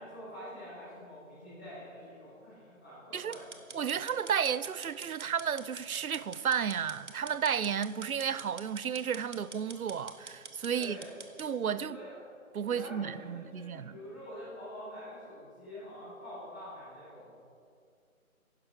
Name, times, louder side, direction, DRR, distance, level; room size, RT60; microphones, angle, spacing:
voice 1, 0.0-3.5 10.7-11.1 11.7-12.2 12.7-17.2, equal, 10° left, 1.1 m, -46 dB
sound 1, 3.3-11.5, right 4 dB, 55° right, 1.0 m, -47 dB
voice 2, 3.7-11.0 11.4-12.0 12.5-14.0, right 7 dB, 80° right, 0.5 m, -32 dB
11.5 x 10.5 x 3.5 m
figure-of-eight pair, 160°, 43 cm